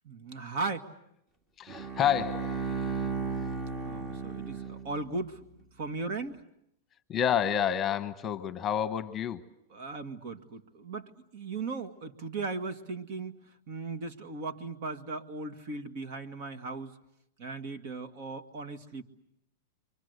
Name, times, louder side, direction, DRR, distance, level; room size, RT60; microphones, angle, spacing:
voice 1, 0.0-0.9 3.8-5.4 5.8-6.4 9.7-17.0 17.4-19.0, right 3 dB, 50° right, 8 dB, 2.0 m, -37 dB
voice 2, 1.6-3.1 3.3-3.5 7.1-9.4, left 9 dB, 20° left, 11 dB, 1.1 m, -30 dB
Bowed string instrument, 1.7-5.2, right 5 dB, 20° right, 2.1 m, -35 dB
29.5 x 24.0 x 8.2 m, 0.78 s
supercardioid pair, 145°, 0 cm